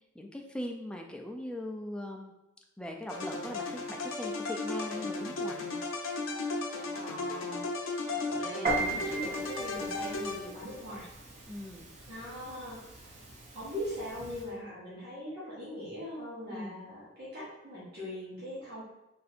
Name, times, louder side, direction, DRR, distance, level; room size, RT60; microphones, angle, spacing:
voice 1, 0.2-2.3 2.8-5.7 11.5-11.9 16.5-16.8, left 1 dB, 5° left, 1 dB, 0.3 m, -40 dB
sound 1, 3.1-10.8, left 3 dB, 85° left, 0.6 m, -35 dB
voice 2, 6.9-7.6 8.1-11.1 12.1-13.1 13.5-18.8, equal, 55° right, -9 dB, 1.4 m, -41 dB
Piano, 8.6-14.5, right 3 dB, 35° right, 0.8 m, -38 dB
3.2 x 2.7 x 4.2 m, 0.92 s
head